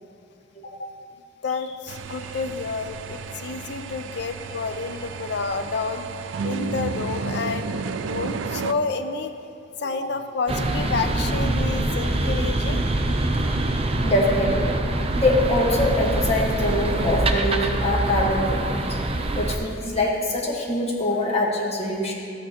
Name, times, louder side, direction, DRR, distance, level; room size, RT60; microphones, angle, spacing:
voice 1, 1.4-6.1 6.4-9.3 9.8-12.8 22.0-22.1, left 4 dB, 60° left, 8 dB, 0.5 m, -29 dB
sound 1, 1.9-8.7, right 4 dB, 85° right, 0.4 m, -32 dB
sound 2, 10.5-19.6, right 1 dB, 30° right, 0.6 m, -24 dB
voice 2, 14.0-14.7 15.1-19.0 19.4-22.1, left 1 dB, 35° left, -3 dB, 1.4 m, -23 dB
13.0 x 8.4 x 2.9 m, 2.5 s
head